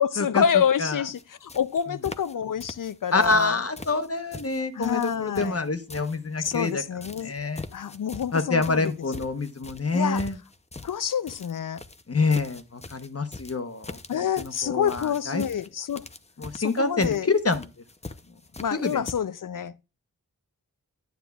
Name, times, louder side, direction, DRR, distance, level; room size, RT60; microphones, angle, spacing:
voice 1, 0.0-3.6 4.7-5.6 6.4-7.3 7.7-8.9 9.9-10.2 10.8-11.8 14.1-16.1 16.5-17.3 18.6-19.7, left 8 dB, 65° left, 0.5 m, -27 dB
sound 1, 1.1-1.2 1.5-2.3 2.6-3.5 3.8-6.7 7.0-19.1, left 3 dB, 20° left, 0.6 m, -42 dB
voice 2, 3.1-6.8 7.2-7.6 8.3-10.4 12.1-14.0 14.4-15.4 16.4-17.7 18.7-19.0, left 3 dB, 40° left, 1.0 m, -26 dB
9.3 x 9.3 x 2.3 m
wide cardioid pair, 45°, 36 cm